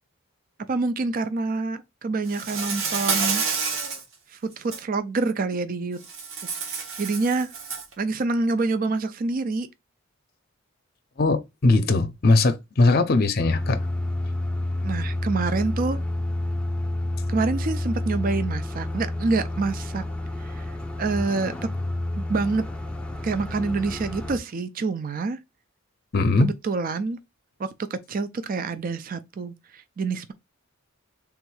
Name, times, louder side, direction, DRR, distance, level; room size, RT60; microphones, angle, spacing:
voice 1, 0.7-3.4 4.3-6.0 7.0-7.5 8.0-9.7 14.8-16.0 17.3-20.0 20.4-20.7 21.0-21.5 22.2-22.6 23.2-25.4 26.4-27.2 27.6-30.3, right 3 dB, 40° right, 0.4 m, -27 dB
Insect, 2.3-4.0 4.5-4.8 6.0-7.9, right 5 dB, 70° right, 0.9 m, -29 dB
voice 2, 11.2-13.8 26.1-26.5, left 3 dB, 50° left, 0.6 m, -20 dB
sound 1, 13.4-24.4, left 1 dB, 5° left, 0.6 m, -29 dB
3.6 x 2.6 x 4.7 m
head